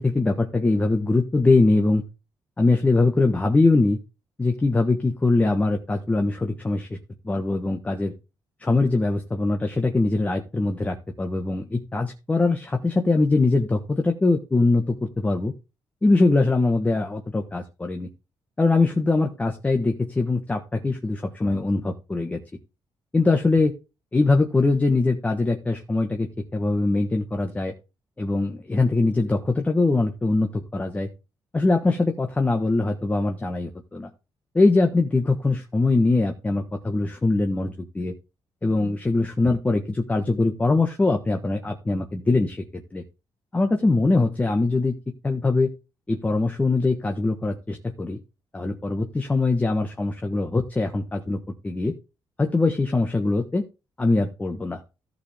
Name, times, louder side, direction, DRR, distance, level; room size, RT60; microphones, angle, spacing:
voice 1, 0.0-2.0 2.6-4.0 4.4-6.9 7.2-8.1 8.6-15.5 16.0-18.1 18.6-22.4 23.1-23.7 24.1-27.7 28.2-31.1 31.5-34.1 34.5-38.1 38.6-43.0 43.5-44.9 45.2-45.7 46.1-48.2 48.5-51.4 51.6-51.9 52.4-53.6 54.0-54.8, left 3 dB, 15° left, 4 dB, 1.5 m, -22 dB
15.0 x 7.0 x 3.6 m, 0.28 s
cardioid pair, 145°, 9 cm